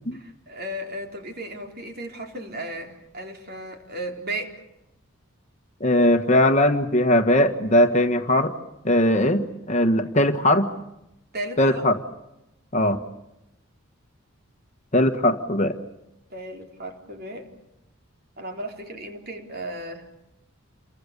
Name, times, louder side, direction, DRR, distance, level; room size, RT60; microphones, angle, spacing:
voice 1, 0.1-4.6 11.3-11.9 16.3-17.5 18.4-20.1, right 1 dB, 45° right, 3 dB, 3.9 m, -35 dB
voice 2, 5.8-8.5 8.8-10.7 11.6-12.0 12.7-13.0 14.9-15.8, left 1 dB, 30° left, 7 dB, 1.4 m, -19 dB
29.0 x 24.0 x 6.8 m, 0.90 s
head